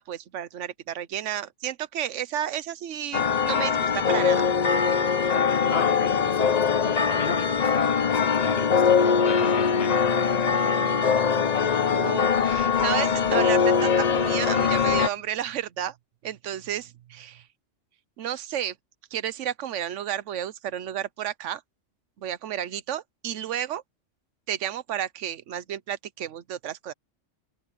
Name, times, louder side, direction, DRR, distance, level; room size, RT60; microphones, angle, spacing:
voice 1, 0.0-4.4 11.8-15.9 16.2-17.4 18.2-18.7 19.1-21.6 22.2-23.8 24.5-26.9, right 10 dB, 75° right, 1.1 m, -32 dB
sound 1, 3.1-15.1, left 6 dB, 40° left, 0.7 m, -22 dB
voice 2, 5.7-10.1, left 5 dB, 55° left, 1.2 m, -35 dB
open air
omnidirectional pair, 1.3 m